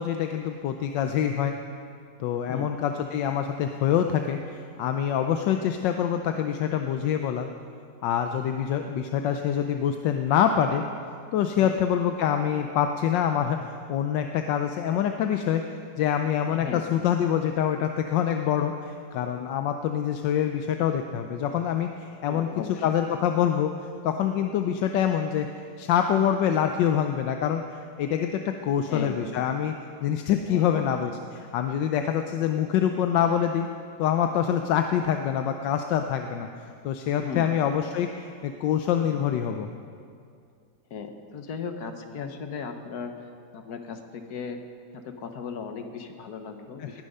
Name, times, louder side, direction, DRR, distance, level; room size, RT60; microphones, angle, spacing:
voice 1, 0.0-1.5 2.2-7.5 8.0-10.8 11.3-15.6 16.0-22.5 22.8-23.7 24.0-25.5 25.8-27.6 28.0-29.7 30.0-33.7 34.0-36.5 36.8-39.7 46.8-47.0, left 9 dB, 85° left, 6 dB, 1.3 m, -25 dB
voice 2, 16.5-16.8 22.2-22.9 28.9-29.2 30.5-30.9 37.1-37.5 40.9-43.1 43.5-44.6 44.9-47.0, left 6 dB, 60° left, 6 dB, 1.5 m, -36 dB
19.0 x 9.9 x 5.5 m, 2.3 s
omnidirectional pair, 1.9 m